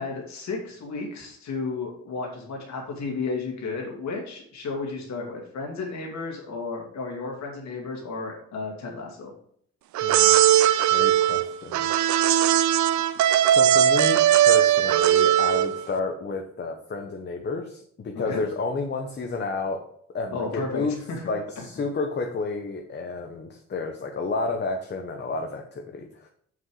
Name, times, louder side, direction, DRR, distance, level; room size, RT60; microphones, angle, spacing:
voice 1, 0.0-9.3 18.1-18.4 20.3-21.3 21.6-21.7, left 4 dB, 70° left, 0 dB, 2.2 m, -33 dB
sound 1, 9.9-15.8, right 11 dB, 75° right, 0.6 m, -19 dB
voice 2, 10.0-10.4 10.9-11.9 13.4-19.8 20.1-21.0 21.3-26.3, left 3 dB, 35° left, 3 dB, 1.0 m, -31 dB
7.3 x 6.3 x 4.8 m, 0.64 s
cardioid pair, 120°, 30 cm